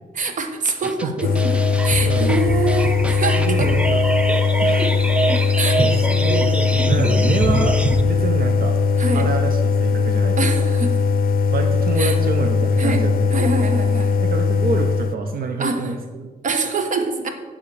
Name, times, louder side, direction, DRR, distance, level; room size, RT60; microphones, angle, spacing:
voice 1, 0.1-1.5 1.8-3.7 5.6-5.8 9.0-9.3 10.4-11.0 12.0-12.2 12.8-13.0 13.3-14.2 15.6-15.9 16.4-17.3, right 3 dB, 60° right, 6 dB, 0.9 m, -24 dB
sound 1, 0.8-8.0, right 2 dB, 10° right, 0.4 m, -24 dB
sound 2, 1.2-15.2, left 5 dB, 85° left, 0.4 m, -19 dB
voice 2, 2.0-2.4 3.4-4.0 4.6-4.9 5.3-5.6 6.1-6.5 6.9-8.8 9.1-10.5 11.5-13.4 14.2-16.3, right 4 dB, 85° right, 5 dB, 0.7 m, -27 dB
9.8 x 3.6 x 6.8 m, 1.4 s
wide cardioid pair, 180°, 15 cm